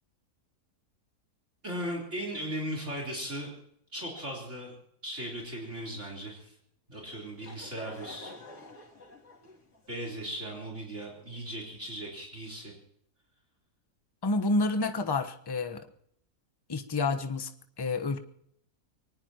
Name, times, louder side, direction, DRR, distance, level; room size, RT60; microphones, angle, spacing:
voice 1, 1.6-3.5 3.9-4.8 5.0-6.6 6.9-8.3 9.9-12.7, right 1 dB, 45° right, -1 dB, 4.1 m, -37 dB
Laughter / Crowd, 7.0-11.7, left 2 dB, 90° left, 3.5 m, -49 dB
voice 2, 14.2-15.9 16.7-17.5 17.8-18.2, left 3 dB, 20° left, 8 dB, 0.9 m, -29 dB
24.0 x 19.0 x 2.9 m, 0.71 s
omnidirectional pair, 1.7 m